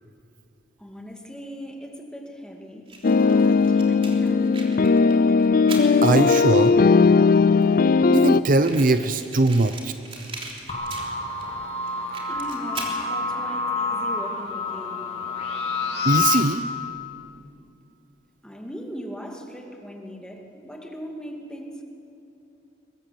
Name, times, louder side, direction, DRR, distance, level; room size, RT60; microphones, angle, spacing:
voice 1, 0.8-2.9 3.2-4.8 12.3-15.1 18.4-21.8, equal, 5° left, 1 dB, 2.4 m, -39 dB
Fire, 2.9-6.7 7.4-7.5 7.6-7.7 7.9-8.0 8.6-11.5 11.8-13.0, right 3 dB, 30° right, 3.4 m, -39 dB
sound 1, 3.0-8.4, left 4 dB, 55° left, 0.5 m, -18 dB
voice 2, 6.0-6.7 8.1-9.9 16.0-16.6, right 2 dB, 50° right, 10 dB, 0.7 m, -20 dB
sound 2, 10.7-16.4, left 4 dB, 40° left, 3.7 m, -28 dB
22.5 x 21.0 x 7.7 m, 2.7 s
head